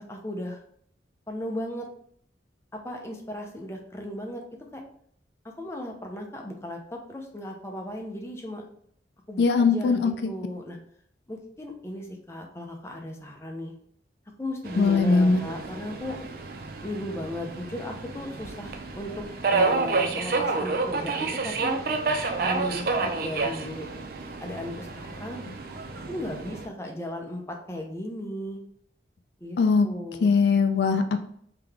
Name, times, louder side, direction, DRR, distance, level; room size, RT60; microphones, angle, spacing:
voice 1, 0.1-0.6 1.3-1.9 2.7-4.4 4.7-4.8 5.6-8.6 9.3-10.8 11.3-13.7 14.4-16.2 16.8-19.1 19.5-21.8 22.4-23.9 24.4-25.4 26.1-28.6 29.4-29.6 29.8-30.3, left 1 dB, 15° left, 1 dB, 0.6 m, -36 dB
voice 2, 9.4-10.3 14.8-15.4 29.6-29.9 30.2-31.2, left 4 dB, 65° left, 8 dB, 0.3 m, -21 dB
Subway metro underground, 14.6-26.7, right 3 dB, 50° right, 0.4 m, -30 dB
3.8 x 2.8 x 3.4 m, 0.64 s
head